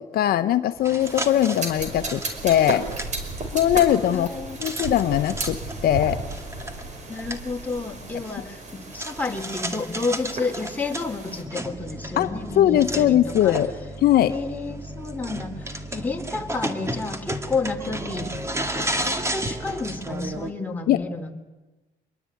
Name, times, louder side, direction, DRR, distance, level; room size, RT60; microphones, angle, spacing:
voice 1, 0.0-2.8 3.5-4.3 4.6-5.6 5.8-6.2 12.2-13.7 14.0-14.3 20.9-21.0, left 11 dB, 65° left, 11 dB, 1.0 m, -20 dB
sound 1, 0.7-20.5, right 1 dB, 15° right, 2.3 m, -34 dB
sound 2, 1.0-11.4, right 3 dB, 45° right, 5.3 m, -34 dB
voice 2, 4.1-4.6 7.1-8.6 8.9-13.5 14.3-18.3 18.8-21.3, left 3 dB, 10° left, 2 dB, 3.8 m, -31 dB
26.0 x 22.0 x 9.3 m, 1.2 s
cardioid pair, 110°, 17 cm